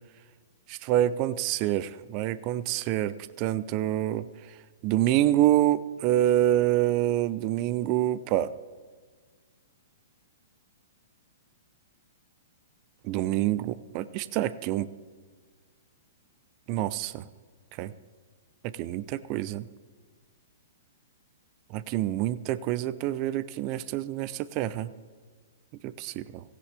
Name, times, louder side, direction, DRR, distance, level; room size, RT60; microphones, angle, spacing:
voice 1, 0.7-4.3 4.8-8.5 13.0-14.9 16.7-17.2 17.8-17.9 18.8-19.7 21.7-24.9 25.8-26.4, right 13 dB, 40° right, 17 dB, 0.6 m, -26 dB
16.5 x 16.5 x 3.5 m, 1.5 s
hypercardioid pair, 120°, 0 cm